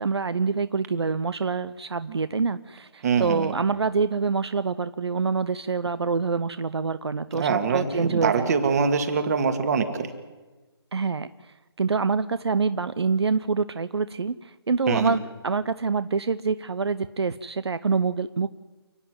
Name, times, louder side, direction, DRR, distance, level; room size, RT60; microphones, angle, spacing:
voice 1, 0.0-8.6 10.9-18.5, right 4 dB, 75° right, 14 dB, 0.7 m, -26 dB
voice 2, 3.0-3.5 7.3-10.1 14.9-15.2, right 5 dB, 40° right, 8 dB, 2.2 m, -24 dB
28.5 x 9.8 x 9.5 m, 1.3 s
figure-of-eight pair, 155°, 14 cm